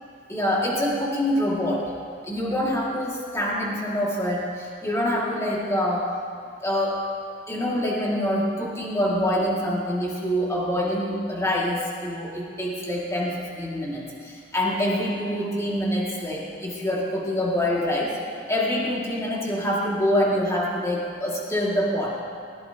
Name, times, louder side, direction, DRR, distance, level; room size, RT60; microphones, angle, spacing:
voice 1, 0.3-1.8 2.2-6.1 6.6-7.0 7.5-18.2 18.5-22.2, equal, 15° left, -5 dB, 2.3 m, -25 dB
20.5 x 16.5 x 3.0 m, 2.2 s
head